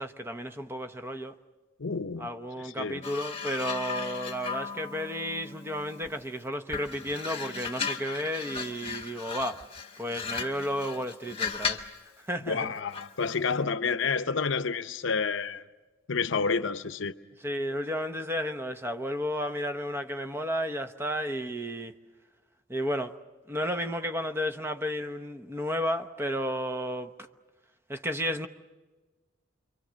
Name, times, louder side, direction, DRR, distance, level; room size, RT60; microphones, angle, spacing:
voice 1, 0.0-1.3 2.2-9.6 10.0-11.8 12.3-12.7 17.4-21.9 22.7-23.1 23.5-27.1 27.9-28.5, equal, 10° right, 0.9 m, -32 dB
voice 2, 1.8-2.3 2.6-3.0 12.5-15.6 16.1-17.1, left 5 dB, 65° left, 0.8 m, -29 dB
sound 1, 3.0-6.3 6.7-12.0 12.9-13.2, left 5 dB, 30° left, 1.5 m, -36 dB
27.5 x 24.0 x 6.3 m
head